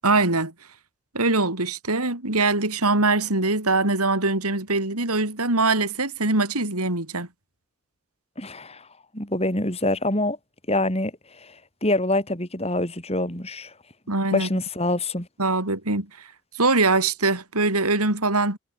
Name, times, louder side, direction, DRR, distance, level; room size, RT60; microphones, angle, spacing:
voice 1, 0.0-0.5 1.1-7.3 14.1-14.5 15.4-16.1 16.6-18.6, right 3 dB, 90° right, 5.1 m, -22 dB
voice 2, 8.4-8.9 9.1-10.4 10.7-13.7 14.3-15.3, left 1 dB, 25° left, 6.2 m, -26 dB
head